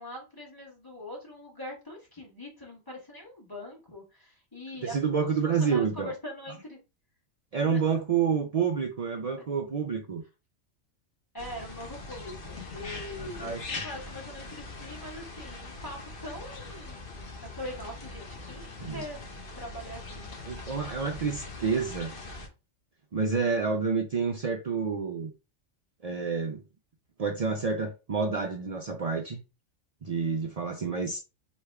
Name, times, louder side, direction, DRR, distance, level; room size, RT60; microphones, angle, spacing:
voice 1, 0.0-6.8 7.6-7.8 11.3-19.2 19.5-20.3, left 1 dB, 15° left, 1.6 m, -42 dB
voice 2, 4.8-6.1 7.5-10.2 13.4-13.7 18.8-19.0 20.4-22.1 23.1-25.3 26.0-26.6 27.2-29.4 30.0-31.2, right 5 dB, 65° right, 0.3 m, -28 dB
sound 1, 11.4-22.5, left 3 dB, 45° left, 1.0 m, -42 dB
3.3 x 3.0 x 4.6 m
omnidirectional pair, 1.4 m